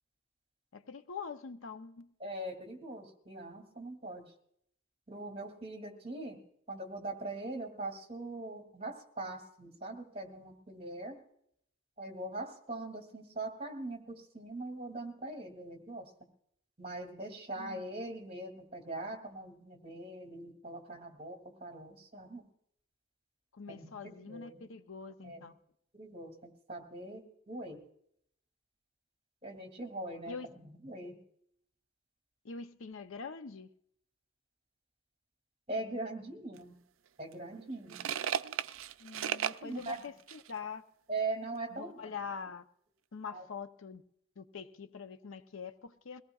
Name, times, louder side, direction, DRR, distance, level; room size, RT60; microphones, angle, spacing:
voice 1, 0.7-2.1 17.6-17.8 23.5-25.5 30.3-30.5 32.4-33.7 39.0-40.8 41.7-42.7 43.1-44.0 44.4-46.2, left 5 dB, 70° left, 10 dB, 0.6 m, -44 dB
voice 2, 2.2-4.3 5.1-6.4 6.7-11.2 12.0-16.1 16.8-22.5 23.7-24.6 25.2-25.5 25.9-27.8 29.4-31.2 35.7-36.8 37.2-38.1 39.6-40.0 41.1-42.1 43.3-43.4, right 2 dB, 30° right, 1 dB, 2.4 m, -41 dB
sound 1, 36.6-36.7 37.3-40.5, right 9 dB, 70° right, 0.4 m, -36 dB
22.5 x 17.5 x 2.4 m, 0.70 s
head